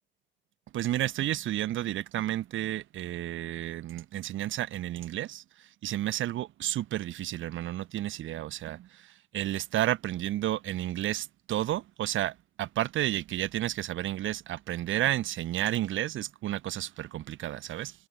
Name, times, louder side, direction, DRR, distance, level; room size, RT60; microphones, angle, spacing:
voice 1, 0.7-5.4 5.8-8.9 9.3-17.9, right 13 dB, 80° right, 2.5 m, -31 dB
cardioid pair, 90°, 20 cm